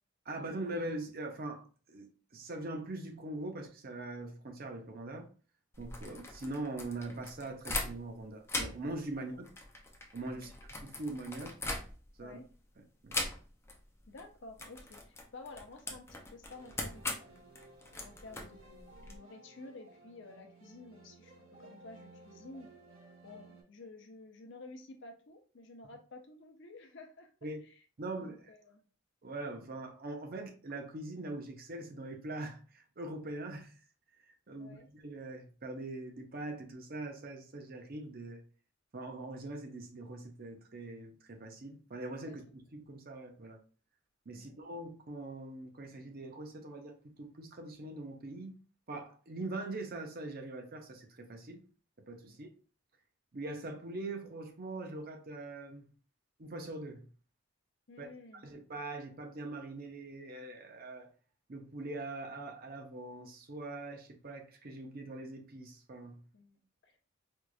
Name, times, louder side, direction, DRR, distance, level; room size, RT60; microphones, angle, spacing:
voice 1, 0.3-5.3 5.8-9.5 10.1-10.5 10.8-11.6 12.2-12.4 12.8-13.2 27.4-27.6 28.0-28.5 29.2-33.7 34.3-38.4 38.9-42.5 42.7-43.6 44.3-48.6 48.9-51.6 52.1-52.5 53.3-55.9 56.4-57.1 58.0-58.1 58.4-61.1 61.5-66.2, right 2 dB, 45° right, 0.7 m, -42 dB
sound 1, 5.7-8.2 8.4-12.3 13.1-13.8 14.0-14.2 14.6-19.2, left 2 dB, 10° left, 0.5 m, -40 dB
voice 2, 14.1-17.4 18.0-22.7 23.2-27.3 27.6-27.8 28.1-28.8 34.6-34.9 42.3-42.5 44.3-44.5 52.3-52.4 57.9-58.5 66.3-67.0, left 3 dB, 60° left, 0.6 m, -52 dB
sound 2, 16.5-23.6, right 2 dB, 85° right, 1.4 m, -57 dB
4.5 x 2.4 x 2.4 m
head